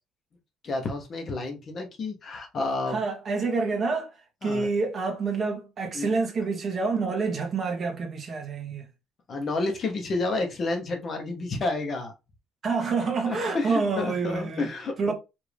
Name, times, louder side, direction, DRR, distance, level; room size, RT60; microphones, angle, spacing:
voice 1, 0.6-3.0 4.4-4.7 5.9-6.1 9.3-12.1 13.3-15.1, left 3 dB, 35° left, 0.8 m, -30 dB
voice 2, 2.9-8.9 12.6-14.7 15.0-15.1, right 4 dB, 30° right, 1.2 m, -28 dB
4.9 x 2.6 x 3.3 m
cardioid pair, 170°, 0 cm